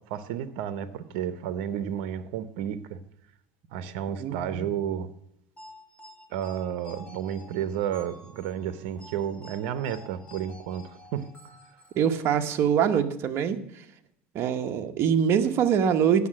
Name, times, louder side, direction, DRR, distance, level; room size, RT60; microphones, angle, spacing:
voice 1, 0.0-3.0 3.7-5.1 6.3-11.3, right 9 dB, 75° right, 13 dB, 0.8 m, -32 dB
voice 2, 4.2-4.7 12.0-13.6 14.3-16.3, right 8 dB, 45° right, 7 dB, 1.0 m, -24 dB
sound 1, 5.6-12.4, left 2 dB, 20° left, 2.3 m, -50 dB
9.5 x 6.5 x 7.5 m, 0.76 s
supercardioid pair, 125°, 6 cm